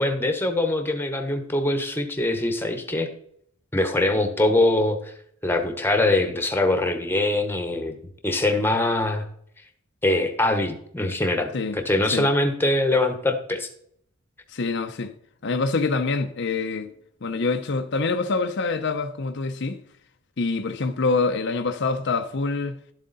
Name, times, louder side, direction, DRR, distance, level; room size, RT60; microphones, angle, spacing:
voice 1, 0.0-3.1 3.7-5.1 5.4-7.9 8.2-9.2 10.0-13.7, left 2 dB, 10° left, 1.1 m, -23 dB
voice 2, 14.5-15.1 15.4-16.9 17.2-19.8 20.4-22.8, left 3 dB, 55° left, 0.7 m, -25 dB
12.0 x 7.5 x 4.1 m
head